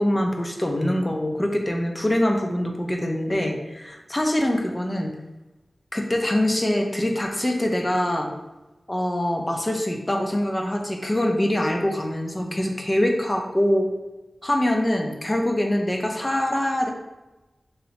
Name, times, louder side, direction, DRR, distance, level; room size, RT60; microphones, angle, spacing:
voice 1, 0.0-5.1 5.9-8.3 8.9-13.9 14.4-16.9, left 1 dB, 20° left, 2 dB, 0.5 m, -24 dB
3.1 x 2.7 x 2.9 m, 1.0 s
wide cardioid pair, 80°, 0 cm